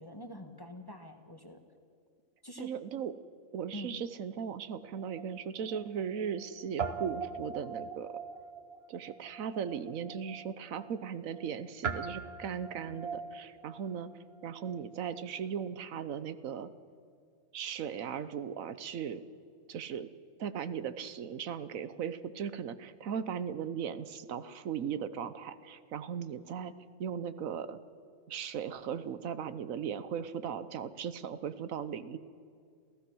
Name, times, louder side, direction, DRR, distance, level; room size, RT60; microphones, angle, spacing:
voice 1, 0.0-1.6 2.4-2.7 3.7-4.0, left 1 dB, 15° left, 6 dB, 1.4 m, -45 dB
voice 2, 2.6-3.1 3.5-8.1 8.9-14.1 14.4-16.7 17.5-19.2 19.7-20.1 20.4-26.7 27.0-27.8 28.3-32.2, right 7 dB, 80° right, 13 dB, 1.2 m, -37 dB
Guitar, 4.7-6.5 6.8-15.4, right 5 dB, 50° right, 1.2 m, -42 dB
27.5 x 16.0 x 6.2 m, 2.1 s
omnidirectional pair, 1.4 m